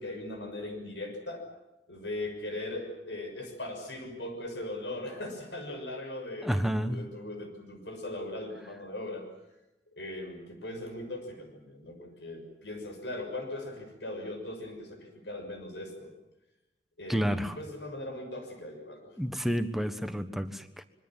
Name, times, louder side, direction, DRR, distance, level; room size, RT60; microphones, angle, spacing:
voice 1, 0.0-1.4 1.9-9.2 10.0-16.1 17.0-19.1, left 1 dB, 75° left, 5 dB, 6.3 m, -39 dB
voice 2, 6.4-7.1 17.1-17.6 19.2-20.8, equal, ahead, 8 dB, 1.4 m, -30 dB
25.0 x 23.0 x 7.5 m, 0.94 s
head